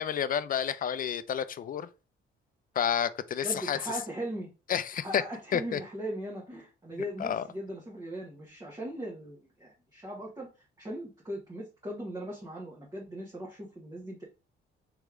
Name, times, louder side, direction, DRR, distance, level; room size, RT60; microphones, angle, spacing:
voice 1, 0.0-1.9 2.8-4.0 4.7-5.2 5.5-5.8 6.9-7.4, left 8 dB, 45° left, 0.5 m, -30 dB
voice 2, 3.4-4.5 4.9-10.5 10.8-14.2, right 1 dB, 20° right, 1.2 m, -39 dB
3.4 x 3.1 x 3.6 m
cardioid pair, 90°, 20 cm